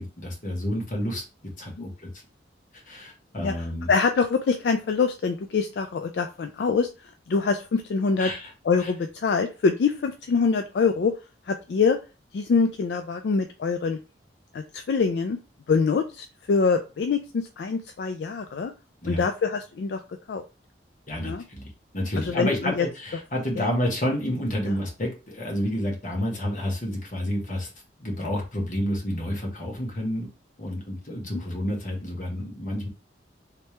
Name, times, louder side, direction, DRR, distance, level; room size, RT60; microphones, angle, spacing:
voice 1, 0.0-2.1 2.7-3.9 8.2-8.5 8.8-8.9 19.0-19.2 21.1-21.7 21.9-27.7 28.0-30.3 30.6-32.9, equal, 45° left, -1 dB, 1.3 m, -29 dB
voice 2, 3.9-6.9 7.3-8.3 8.7-11.1 11.5-12.0 12.3-14.0 14.5-15.4 15.7-18.7 19.1-20.0 20.3-20.4 21.2-21.4 22.2-22.5 22.8-22.9 23.6-23.7, left 5 dB, 65° left, 6 dB, 0.3 m, -24 dB
3.3 x 2.9 x 3.2 m, 0.31 s
head